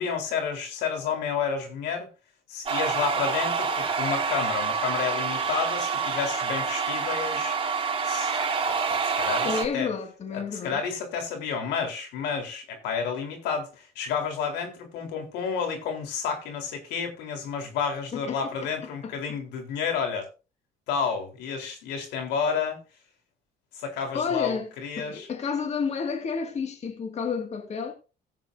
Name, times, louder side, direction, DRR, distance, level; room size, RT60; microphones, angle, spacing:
voice 1, 0.0-2.1 2.5-7.6 8.0-8.4 8.7-9.9 10.3-20.3 20.9-22.8 23.7-25.3, left 6 dB, 90° left, 3.9 m, -30 dB
sound 1, 2.7-9.7, right 5 dB, 30° right, 3.8 m, -27 dB
voice 2, 9.4-10.8 18.1-18.7 19.0-19.4 24.1-24.7 25.0-27.9, left 5 dB, 40° left, 2.2 m, -31 dB
16.5 x 9.1 x 2.7 m
cardioid pair, 110°, 17 cm